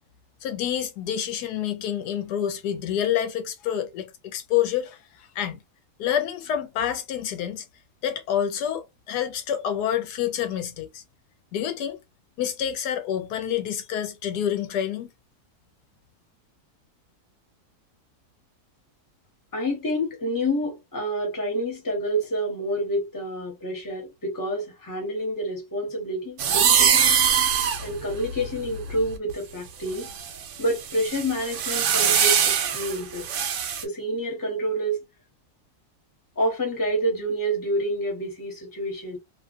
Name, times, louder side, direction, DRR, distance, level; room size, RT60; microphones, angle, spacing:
voice 1, 0.4-5.6 6.0-7.7 8.0-11.0 11.5-12.0 12.4-15.1, left 10 dB, 90° left, 1.2 m, -28 dB
voice 2, 19.5-27.1 27.8-30.1 30.6-33.3 33.8-35.0 36.4-39.2, equal, 15° left, 0.9 m, -28 dB
sound 1, 26.4-29.3 29.9-33.8, right 8 dB, 65° right, 0.8 m, -23 dB
2.9 x 2.3 x 2.5 m
omnidirectional pair, 1.7 m